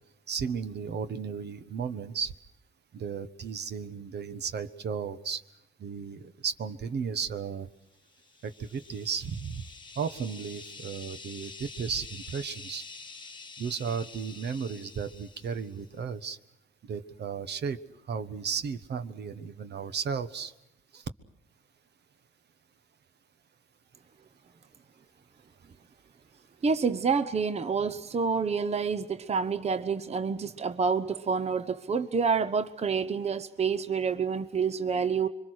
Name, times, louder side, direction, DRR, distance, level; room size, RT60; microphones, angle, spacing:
voice 1, 0.3-2.3 2.9-5.4 5.8-7.7 8.4-9.7 10.0-12.8 13.6-16.4 16.8-17.8 18.1-20.5 20.9-21.0, right 6 dB, 55° right, 11 dB, 1.3 m, -34 dB
sound 1, 8.1-15.9, left 4 dB, 25° left, 1.3 m, -47 dB
voice 2, 26.6-35.3, right 5 dB, 35° right, 10 dB, 0.9 m, -28 dB
26.0 x 24.0 x 6.4 m, 0.93 s
cardioid pair, 90°, 20 cm